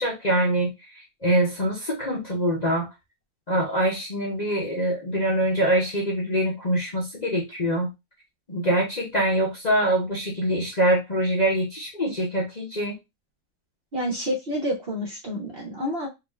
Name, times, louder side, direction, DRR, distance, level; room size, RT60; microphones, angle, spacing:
voice 1, 0.0-2.9 3.5-7.9 8.5-13.0, right 1 dB, 35° left, -4 dB, 0.8 m, -24 dB
voice 2, 13.9-16.1, equal, 45° right, 0 dB, 1.0 m, -29 dB
4.5 x 2.6 x 2.4 m, 0.22 s
omnidirectional pair, 1.6 m